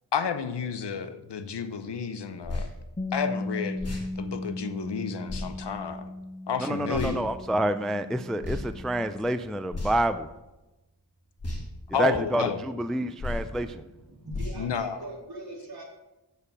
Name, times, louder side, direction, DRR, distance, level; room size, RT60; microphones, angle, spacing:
voice 1, 0.1-2.7 3.1-6.1 6.5-7.2 11.9-12.6 14.5-15.0, left 6 dB, 85° left, 10 dB, 0.9 m, -31 dB
sound 1, 2.4-2.7 3.8-4.1 5.3-5.5 6.9-7.2 8.4-8.6 9.7-10.1 11.4-11.6 13.2-13.5 14.3-14.6, left 2 dB, 35° left, 2.9 m, -33 dB
Bass guitar, 3.0-9.2, left 2 dB, 20° left, 0.8 m, -37 dB
voice 2, 6.6-10.3 12.0-13.8, right 1 dB, ahead, 11 dB, 0.3 m, -28 dB
voice 3, 14.0-15.8, right 1 dB, 65° right, -3 dB, 3.2 m, -41 dB
7.0 x 6.6 x 7.2 m, 1.0 s
wide cardioid pair, 95°, 40 cm